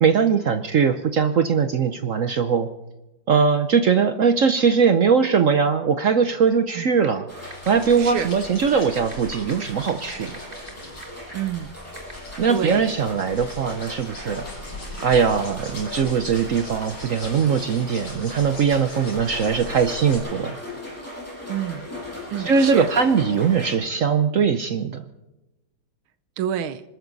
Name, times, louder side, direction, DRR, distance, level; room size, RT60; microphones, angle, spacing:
voice 1, 0.0-2.7 3.3-7.3 7.7-10.4 12.4-14.4 15.0-20.6 22.4-25.0, right 6 dB, 60° right, 9 dB, 0.8 m, -20 dB
sound 1, 7.0-7.1 7.5-7.9 8.2-8.3 9.0-10.7 11.0-11.1 12.0-12.1, right 2 dB, 25° right, 2.9 m, -37 dB
sound 2, 7.3-23.7, left 1 dB, 5° left, 7.6 m, -38 dB
sound 3, 7.5-20.2, left 2 dB, 65° left, 6.4 m, -41 dB
voice 2, 11.3-11.8 12.5-12.8 21.5-21.9 22.3-22.9 26.4-26.8, right 10 dB, 90° right, 11 dB, 1.6 m, -28 dB
26.0 x 13.0 x 4.0 m, 0.99 s
omnidirectional pair, 2.2 m